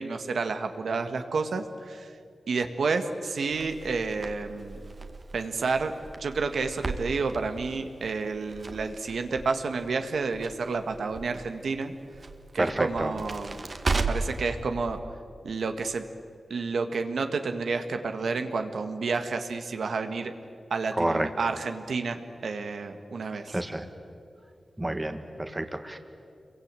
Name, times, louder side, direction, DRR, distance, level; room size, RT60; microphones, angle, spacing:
voice 1, 0.0-2.1 2.5-4.8 5.3-5.9 6.2-11.9 12.5-13.6 13.9-15.0 15.4-16.1 16.5-20.3 20.7-22.2 22.4-23.6, right 4 dB, 85° right, 6 dB, 1.7 m, -30 dB
Crackle, 3.5-14.4, right 3 dB, 45° right, 1.9 m, -36 dB
voice 2, 12.6-13.1 21.0-21.3 23.5-23.9 24.8-26.0, right 1 dB, 15° right, 7 dB, 1.8 m, -29 dB
28.0 x 23.0 x 9.1 m, 2.3 s
wide cardioid pair, 100°, 0 cm